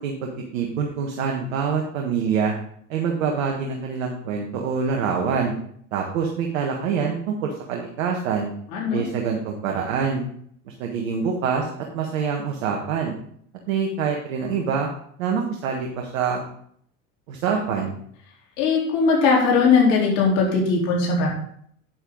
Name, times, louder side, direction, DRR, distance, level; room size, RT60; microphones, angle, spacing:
voice 1, 0.0-2.5 2.9-5.5 5.9-8.5 8.9-10.2 10.7-11.7 11.9-13.2 13.7-14.9 15.2-16.4 17.3-17.9, right 6 dB, 70° right, 1 dB, 1.6 m, -25 dB
voice 2, 8.7-9.0 18.6-21.3, left 4 dB, 65° left, -3 dB, 4.0 m, -19 dB
9.2 x 7.9 x 3.9 m, 0.65 s
hypercardioid pair, 75°, 40 cm